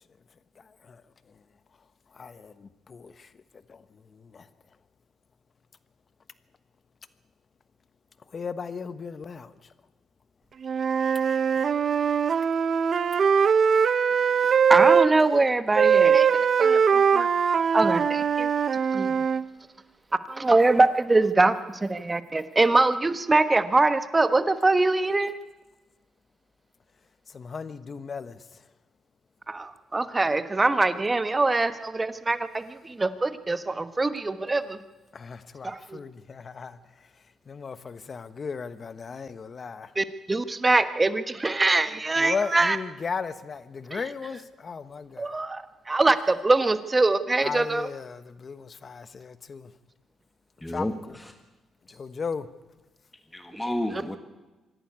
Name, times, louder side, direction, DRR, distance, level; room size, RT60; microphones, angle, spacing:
voice 1, 2.1-3.3 3.7-3.8 4.1-4.5 8.3-9.5 27.3-28.4 35.1-36.8 37.5-39.9 42.2-45.4 47.4-49.7 50.7-51.2 51.9-52.5, left 5 dB, 40° left, 1.2 m, -36 dB
Wind instrument woodwind instrument, 10.6-15.1 15.7-19.4, right 7 dB, 50° right, 0.7 m, -21 dB
voice 2, 14.7-17.3 17.7-18.5 18.9-19.2 20.3-25.3 29.5-34.8 35.6-36.0 39.9-42.8 43.9-44.0 45.2-47.9, right 3 dB, 20° right, 1.2 m, -23 dB
voice 3, 50.6-51.3 53.3-54.2, left 1 dB, 10° left, 1.6 m, -31 dB
25.0 x 11.0 x 9.5 m
cardioid pair, 90°, 0 cm